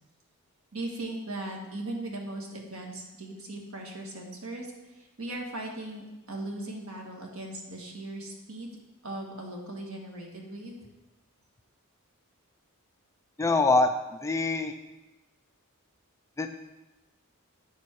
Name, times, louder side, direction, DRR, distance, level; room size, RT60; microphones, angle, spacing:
voice 1, 0.7-8.8 9.0-10.8, right 1 dB, 70° right, 0 dB, 1.8 m, -38 dB
voice 2, 13.4-13.9 14.2-14.8 16.4-16.5, left 3 dB, 15° left, 6 dB, 0.4 m, -24 dB
9.2 x 7.2 x 4.6 m, 1.0 s
head